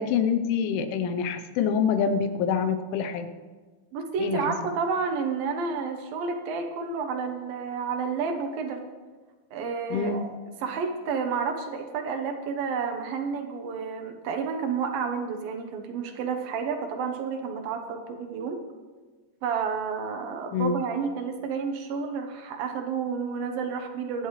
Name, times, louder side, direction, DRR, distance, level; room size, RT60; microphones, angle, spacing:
voice 1, 0.0-3.3 4.2-4.5 9.9-10.3 20.5-20.8, left 6 dB, 90° left, 8 dB, 3.3 m, -26 dB
voice 2, 3.9-8.8 9.5-10.3 10.6-18.6 19.4-24.3, right 5 dB, 70° right, 4 dB, 2.4 m, -30 dB
24.0 x 10.5 x 3.2 m, 1.4 s
omnidirectional pair, 5.3 m